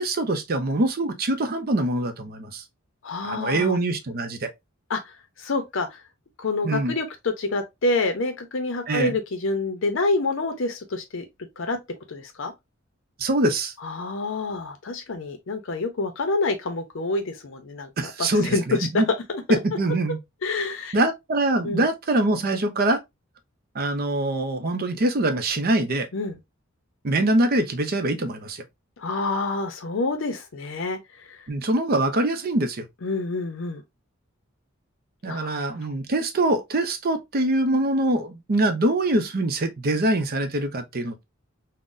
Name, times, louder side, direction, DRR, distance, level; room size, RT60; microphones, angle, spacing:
voice 1, 0.0-2.6 3.2-4.5 6.6-6.9 8.9-9.2 13.2-13.7 18.0-19.1 19.5-20.2 20.9-23.0 23.7-26.1 27.0-28.6 31.5-32.8 35.2-41.2, right 1 dB, 45° right, 0.5 m, -24 dB
voice 2, 3.0-3.8 4.9-5.1 5.4-6.0 6.4-11.2 11.6-11.8 12.1-12.5 13.8-17.9 18.2-19.0 19.3-19.6 20.4-21.0 21.6-21.8 26.1-26.4 29.0-31.4 33.0-33.8 35.3-35.7, left 3 dB, 65° left, 0.6 m, -27 dB
3.7 x 2.1 x 2.5 m
head